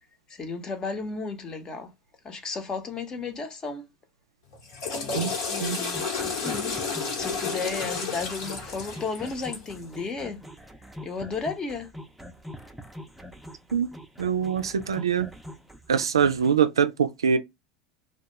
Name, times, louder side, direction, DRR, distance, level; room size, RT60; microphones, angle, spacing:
voice 1, 0.3-1.9 2.2-3.8 5.5-6.8 7.2-10.4 11.0-11.9, left 4 dB, 30° left, 0.8 m, -34 dB
Water / Toilet flush, 4.5-9.8, left 5 dB, 70° left, 1.1 m, -31 dB
sound 1, 5.9-16.6, equal, ahead, 0.5 m, -44 dB
voice 2, 14.2-15.3 15.9-17.4, right 7 dB, 90° right, 0.3 m, -23 dB
2.2 x 2.2 x 2.8 m
hypercardioid pair, 85°, 2 cm